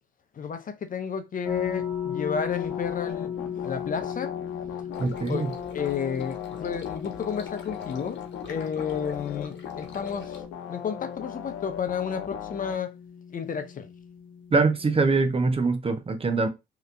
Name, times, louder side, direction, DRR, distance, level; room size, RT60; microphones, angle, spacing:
voice 1, 0.3-4.4 5.3-5.5 5.7-8.2 8.5-10.4 10.7-12.9 13.3-13.9, left 7 dB, 45° left, 0.6 m, -32 dB
sound 1, 1.4-15.6, left 8 dB, 5° left, 1.0 m, -37 dB
sound 2, 2.5-12.8, left 9 dB, 90° left, 0.8 m, -39 dB
sound 3, 4.9-10.4, left 4 dB, 65° left, 1.1 m, -45 dB
voice 2, 5.0-5.5 14.5-16.5, right 3 dB, 30° right, 0.7 m, -23 dB
3.2 x 2.9 x 2.5 m
cardioid pair, 90°, 20 cm